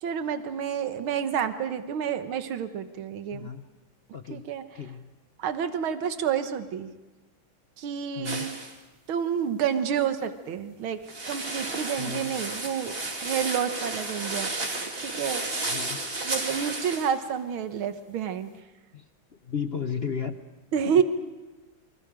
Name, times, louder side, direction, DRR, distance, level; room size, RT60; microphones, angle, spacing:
voice 1, 0.0-3.5 4.3-4.6 5.4-6.9 7.8-8.6 9.1-11.0 11.3-14.5 15.0-15.4 16.2-18.5 20.7-21.0, right 8 dB, 75° right, 9 dB, 2.0 m, -29 dB
voice 2, 3.3-3.7 4.1-4.4 4.7-5.1 8.1-8.7 12.0-12.4 15.7-16.1 18.9-19.0 19.4-20.4 20.9-21.0, left 6 dB, 65° left, 8 dB, 0.6 m, -34 dB
sound 1, 8.3-8.8 11.1-17.1, right 2 dB, 30° right, 2.7 m, -32 dB
29.5 x 25.0 x 5.1 m, 1.2 s
omnidirectional pair, 2.3 m